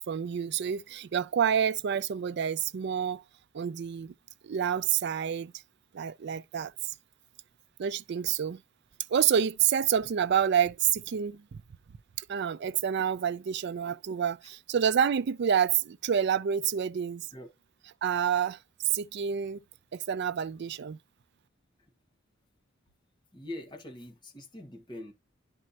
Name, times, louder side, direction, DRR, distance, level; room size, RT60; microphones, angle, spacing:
voice 1, 0.0-3.2 3.5-4.1 4.4-5.5 5.9-6.7 7.8-8.6 9.1-11.4 12.3-17.3 18.0-18.6 18.8-19.6 19.9-21.0, right 8 dB, 55° right, 0.4 m, -28 dB
voice 2, 23.3-25.1, left 1 dB, 20° left, 1.5 m, -43 dB
11.0 x 4.3 x 2.8 m
head